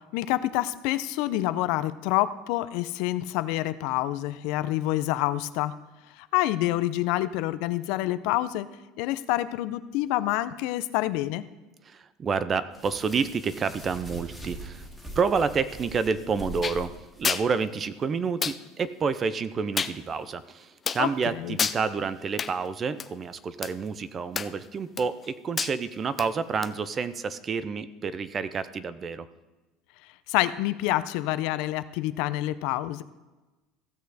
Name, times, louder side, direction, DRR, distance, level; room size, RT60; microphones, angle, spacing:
voice 1, 0.1-5.7 6.3-8.7 9.0-11.4 21.0-21.1 21.4-21.6 30.3-33.0, left 15 dB, 70° left, 14 dB, 0.5 m, -27 dB
voice 2, 11.8-14.9 15.2-29.3, right 5 dB, 30° right, 15 dB, 0.6 m, -29 dB
sound 1, 12.7-17.5, equal, 10° right, 2.0 m, -42 dB
sound 2, 16.6-16.8 17.2-17.5 18.4-18.6 19.8-20.0 20.9-21.0 21.6-21.8 22.4-22.5 23.0-23.1 23.6-23.7 24.4-24.7 25.0-25.3 25.6-25.7 26.2-26.3 26.6-26.7, left 6 dB, 25° left, 0.5 m, -28 dB
15.5 x 6.4 x 4.1 m, 1.1 s
supercardioid pair, 125°, 0 cm